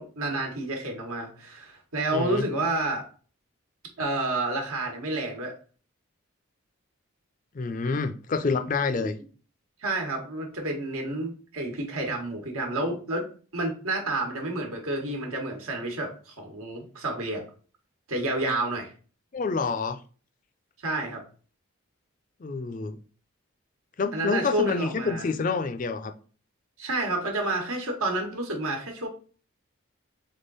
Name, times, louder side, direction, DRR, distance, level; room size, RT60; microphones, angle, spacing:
voice 1, 0.0-3.1 4.0-5.5 9.0-9.1 9.8-13.2 13.5-17.4 18.1-18.9 20.8-21.2 24.1-25.2 26.8-29.1, right 2 dB, 85° right, 1.3 m, -29 dB
voice 2, 2.1-2.5 7.5-9.2 19.3-20.0 22.4-23.0 24.0-26.1, left 4 dB, 40° left, 0.4 m, -28 dB
3.7 x 3.6 x 4.0 m
head